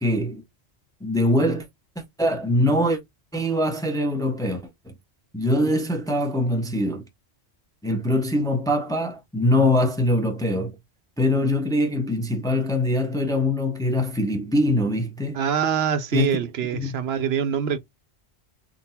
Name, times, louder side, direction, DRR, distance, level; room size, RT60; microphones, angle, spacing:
voice 1, 0.0-0.4 1.0-1.7 2.0-3.0 3.3-4.9 5.3-7.1 7.8-10.8 11.2-15.4 16.1-16.4 16.7-16.9, left 1 dB, 5° left, 0.6 m, -23 dB
voice 2, 15.3-17.8, right 8 dB, 70° right, 0.8 m, -24 dB
3.8 x 2.1 x 4.1 m
omnidirectional pair, 1.1 m